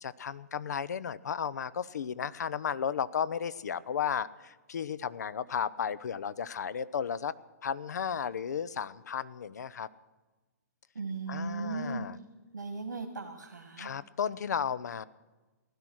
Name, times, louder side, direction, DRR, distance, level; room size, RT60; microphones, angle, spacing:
voice 1, 0.0-7.3 7.6-9.9 11.3-12.2 13.8-15.0, left 7 dB, 70° left, 19 dB, 0.6 m, -34 dB
voice 2, 11.0-12.1 12.5-13.9, right 4 dB, 90° right, 4 dB, 1.8 m, -37 dB
16.5 x 11.5 x 6.2 m, 1.2 s
hypercardioid pair, 130°, 10 cm